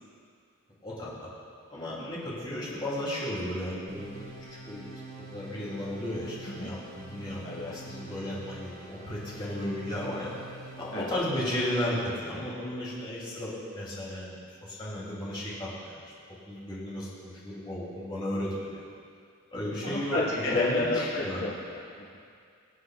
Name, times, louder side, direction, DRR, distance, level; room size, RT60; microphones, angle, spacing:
voice 1, 1.7-4.3 4.6-4.8 5.3-10.4 10.8-14.3 14.6-16.0 16.5-18.8 19.5-21.4, left 1 dB, 20° left, -7 dB, 2.7 m, -34 dB
sound 1, 3.9-11.1, right 2 dB, 85° right, 1.6 m, -46 dB
voice 2, 7.4-8.0 10.9-11.2 19.8-22.2, left 2 dB, 70° left, -6 dB, 1.6 m, -31 dB
22.0 x 7.9 x 2.4 m, 2.3 s
head